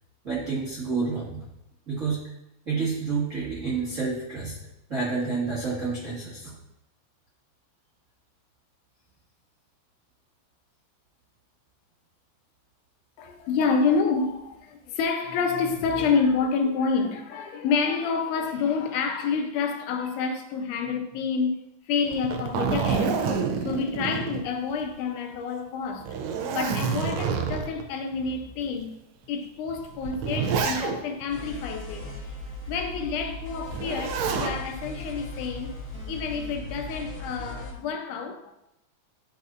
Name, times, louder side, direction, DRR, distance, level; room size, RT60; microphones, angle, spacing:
voice 1, 0.2-1.5 1.9-2.2 2.6-4.6 4.9-6.5, right 4 dB, 35° right, 1.3 m, -29 dB
voice 2, 13.2-26.2 26.5-29.0 29.3-32.0 32.7-35.7 36.1-38.5, left 5 dB, 85° left, 2.2 m, -28 dB
Zipper (clothing), 22.1-25.0 25.4-25.5 26.0-27.8 28.6-28.7 29.7-31.2 33.7-34.6 36.0-36.4, right 6 dB, 75° right, 1.6 m, -28 dB
sound 1, 31.3-37.7, left 1 dB, 35° left, 2.7 m, -38 dB
10.5 x 4.3 x 2.5 m
omnidirectional pair, 3.5 m